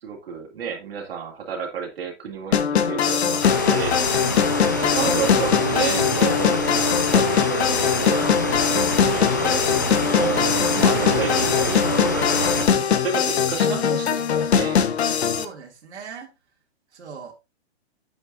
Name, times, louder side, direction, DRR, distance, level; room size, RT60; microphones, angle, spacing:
voice 1, 0.0-4.0 4.9-6.6 7.1-8.3 9.0-14.8, right 6 dB, 60° right, 2.8 m, -31 dB
sound 1, 2.5-15.4, left 7 dB, 75° left, 1.1 m, -21 dB
sound 2, 3.4-12.6, left 1 dB, 20° left, 0.3 m, -27 dB
sound 3, 5.0-11.5, right 6 dB, 15° right, 0.7 m, -34 dB
voice 2, 15.3-16.3 16.9-17.3, right 6 dB, 90° right, 2.5 m, -39 dB
8.6 x 7.8 x 2.6 m
hypercardioid pair, 170°, 33 cm